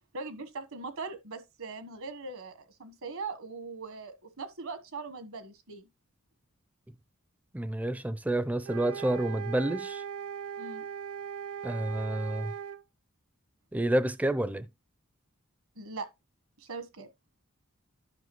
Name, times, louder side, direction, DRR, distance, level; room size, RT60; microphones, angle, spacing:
voice 1, 0.1-5.9 10.6-10.9 15.8-16.1 16.6-17.1, right 4 dB, 70° right, 1.2 m, -40 dB
voice 2, 7.5-10.0 11.6-12.5 13.7-14.7, right 1 dB, 5° right, 0.4 m, -29 dB
sound 1, 8.6-12.8, right 7 dB, 85° right, 0.7 m, -39 dB
11.0 x 5.6 x 3.1 m
head